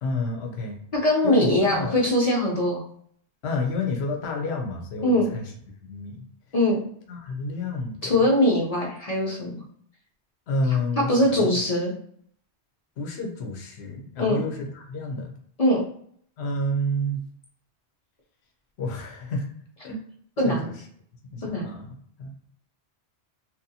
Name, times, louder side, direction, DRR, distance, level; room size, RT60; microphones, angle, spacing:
voice 1, 0.0-0.8 1.2-2.0 3.4-5.4 5.9-6.3 7.1-8.1 10.5-11.5 13.0-15.3 16.4-17.2 18.8-19.4 19.8-20.0 20.4-20.7 21.3-21.9 22.2-22.3, left 2 dB, 75° left, 1 dB, 0.9 m, -29 dB
voice 2, 0.9-2.8 5.0-5.3 6.5-6.8 8.0-9.6 11.0-11.9 14.2-14.4 15.6-15.8 20.4-20.7 21.4-21.7, left 1 dB, 45° left, -4 dB, 0.6 m, -22 dB
2.8 x 2.2 x 2.7 m, 0.63 s
omnidirectional pair, 1.1 m